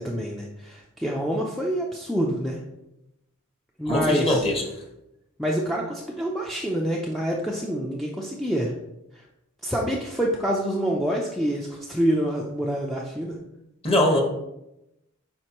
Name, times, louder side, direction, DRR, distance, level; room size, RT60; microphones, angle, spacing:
voice 1, 0.0-2.6 3.8-4.4 5.4-8.7 9.6-13.4, equal, ahead, -2 dB, 0.5 m, -26 dB
voice 2, 3.9-4.6 13.8-14.2, left 1 dB, 25° left, 1 dB, 1.3 m, -21 dB
7.7 x 4.8 x 3.0 m, 0.88 s
head